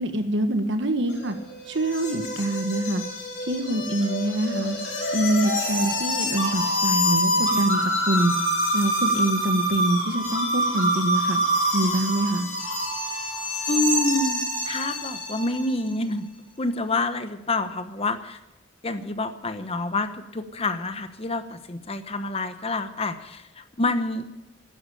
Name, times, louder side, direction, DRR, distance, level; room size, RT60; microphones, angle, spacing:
voice 1, 0.0-1.3 1.7-3.0 3.5-4.8 5.1-8.3 8.7-11.4 11.7-12.5, right 1 dB, 65° right, 8 dB, 1.6 m, -25 dB
sound 1, 1.1-15.7, equal, 80° left, 5.2 m, -26 dB
voice 2, 13.7-16.3 16.6-18.4 18.8-24.3, left 2 dB, 30° left, 10 dB, 0.9 m, -27 dB
12.0 x 10.5 x 8.5 m, 0.92 s
head